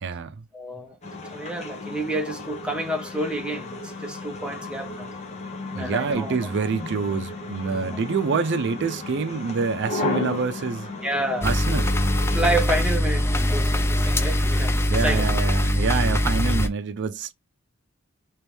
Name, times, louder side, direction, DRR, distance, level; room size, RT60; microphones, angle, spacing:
voice 1, 0.0-0.3 5.7-10.9 11.4-11.9 14.9-17.3, right 5 dB, 60° right, 0.5 m, -26 dB
voice 2, 0.5-1.0 1.3-5.1 5.8-6.3 11.0-11.5 12.3-15.3, right 1 dB, 5° right, 0.8 m, -29 dB
sound 1, 1.0-12.6, left 2 dB, 35° left, 1.0 m, -34 dB
sound 2, 11.4-16.7, left 1 dB, 10° left, 0.4 m, -22 dB
3.0 x 3.0 x 3.3 m
head